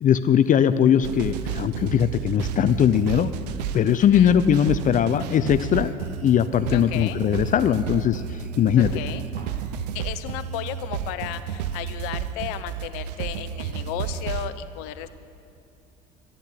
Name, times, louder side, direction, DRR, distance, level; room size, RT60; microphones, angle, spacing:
voice 1, 0.0-3.3 3.7-5.9 6.2-8.9, left 9 dB, 40° left, 11 dB, 0.5 m, -20 dB
sound 1, 1.0-14.5, right 8 dB, 90° right, 0.6 m, -32 dB
voice 2, 4.0-4.3 6.7-7.2 8.8-9.3 9.9-15.1, left 12 dB, 75° left, 12 dB, 0.8 m, -34 dB
sound 2, 4.7-5.7 6.4-9.8, right 3 dB, 50° right, 2.1 m, -48 dB
12.0 x 11.5 x 8.5 m, 2.8 s
hypercardioid pair, 75°, 20 cm